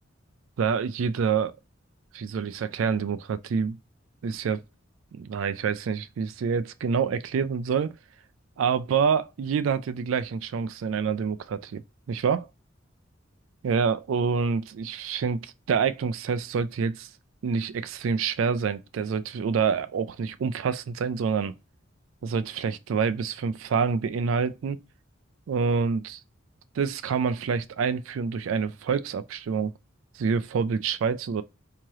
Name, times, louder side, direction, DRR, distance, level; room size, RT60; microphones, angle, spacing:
voice 1, 0.6-1.5 2.1-3.8 4.2-4.6 5.1-7.9 8.6-11.8 12.1-12.5 13.6-17.1 17.4-21.5 22.2-24.8 25.5-26.2 26.8-29.7 30.1-31.4, right 6 dB, 75° right, 0.3 m, -27 dB
3.5 x 2.9 x 3.1 m
head